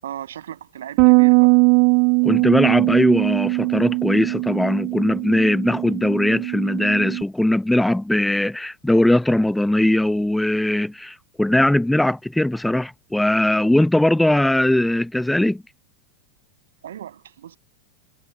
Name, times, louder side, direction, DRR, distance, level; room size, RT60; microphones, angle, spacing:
voice 1, 0.0-1.6 16.8-17.6, right 10 dB, 60° right, 6.7 m, -36 dB
Bass guitar, 1.0-7.2, right 40 dB or more, 45° right, 0.5 m, -19 dB
voice 2, 2.2-15.6, left 1 dB, 5° left, 0.7 m, -20 dB
figure-of-eight pair, 90°, 0 cm